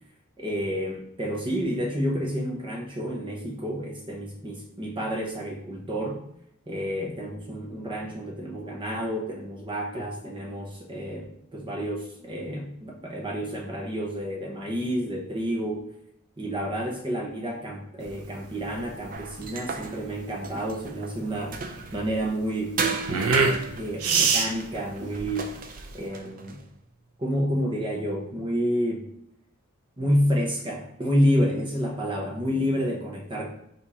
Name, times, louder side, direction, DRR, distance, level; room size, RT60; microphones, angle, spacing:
voice 1, 0.4-6.2 6.7-15.8 16.4-21.6 21.9-22.7 23.1-23.2 23.7-25.5 25.9-26.6 27.2-29.1 30.0-33.5, equal, 25° right, -1 dB, 1.0 m, -29 dB
sound 1, 18.0-26.1, right 4 dB, 80° right, 0.7 m, -27 dB
sound 2, 19.1-22.1 22.8-26.6, right 4 dB, 40° right, 0.6 m, -35 dB
7.2 x 2.8 x 5.0 m, 0.77 s
head